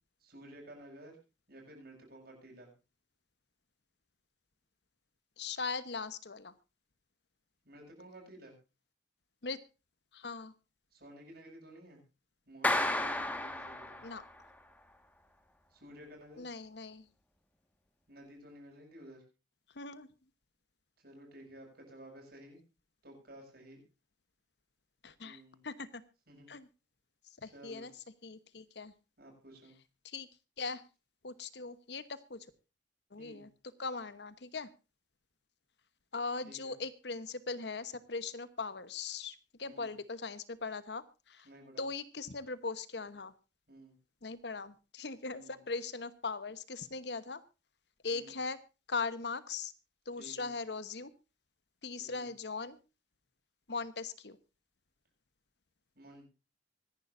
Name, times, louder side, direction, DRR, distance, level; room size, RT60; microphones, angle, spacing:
voice 1, 0.2-1.2 1.5-2.7 7.6-8.5 10.9-12.0 12.5-14.0 15.7-16.5 18.1-19.2 21.0-22.6 23.0-23.8 25.2-25.6 26.3-26.5 27.5-27.9 29.2-29.8 33.2-33.5 36.4-36.8 39.6-39.9 41.4-41.8 43.7-43.9 45.3-45.6 48.1-48.3 50.2-50.5 52.0-52.3 55.9-56.3, right 1 dB, 60° right, 0 dB, 8.0 m, -53 dB
voice 2, 5.4-6.5 9.4-9.6 10.1-10.5 14.0-14.2 16.4-17.1 19.7-20.1 25.0-26.0 26.5-26.7 27.4-27.9 28.2-28.9 30.0-30.3 30.6-30.8 31.2-32.5 33.1-33.5 33.8-34.7 36.1-41.5 41.8-43.3 44.2-47.4 48.0-48.6 48.9-49.7 50.1-51.1 51.8-52.8 53.7-54.4, left 4 dB, 65° left, 14 dB, 1.1 m, -40 dB
Clapping, 12.6-14.4, left 1 dB, 10° left, 1.7 m, -32 dB
25.0 x 11.0 x 2.6 m, 0.30 s
head